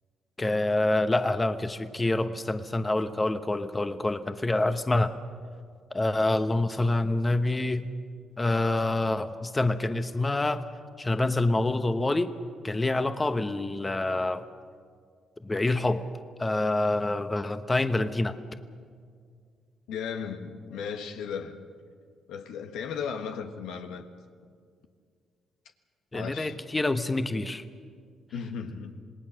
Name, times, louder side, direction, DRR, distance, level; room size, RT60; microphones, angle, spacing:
voice 1, 0.4-5.1 5.9-7.9 8.4-10.6 11.0-12.3 12.6-14.5 15.4-16.1 16.4-18.4 26.1-27.6, left 2 dB, 20° left, 9 dB, 1.0 m, -26 dB
voice 2, 19.9-21.6 22.3-24.1 26.1-26.6 28.3-28.9, left 6 dB, 90° left, 6 dB, 1.4 m, -35 dB
27.0 x 19.0 x 6.4 m, 2.1 s
cardioid pair, 90°, 0 cm